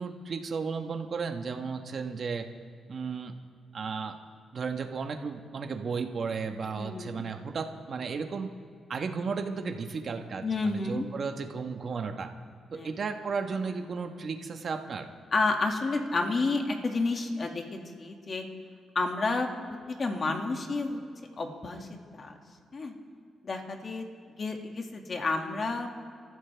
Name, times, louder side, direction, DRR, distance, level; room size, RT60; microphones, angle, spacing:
voice 1, 0.0-2.5 2.9-3.3 3.7-4.2 4.5-8.5 8.9-12.3 12.7-15.1, right 5 dB, 50° right, 5 dB, 1.3 m, -34 dB
voice 2, 6.7-7.2 10.4-11.1 12.7-12.9 15.3-18.5 18.9-21.0 21.4-22.3 22.7-23.0 23.4-24.1 24.4-25.9, left 3 dB, 40° left, 3 dB, 2.1 m, -30 dB
29.0 x 14.0 x 3.5 m, 2.3 s
cardioid pair, 105°, 0 cm